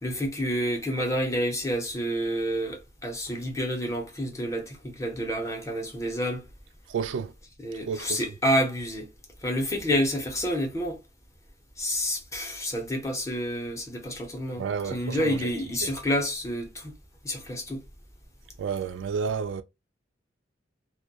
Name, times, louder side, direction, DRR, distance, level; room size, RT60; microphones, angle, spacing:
voice 1, 0.0-6.4 7.6-9.1 9.4-11.0 11.8-14.7 14.9-16.9 17.2-17.8, equal, 15° left, 0.6 m, -29 dB
voice 2, 6.9-7.3 7.9-8.2 14.6-15.5 15.8-15.9 18.6-19.6, right 6 dB, 70° right, 0.3 m, -31 dB
2.2 x 2.1 x 2.7 m
head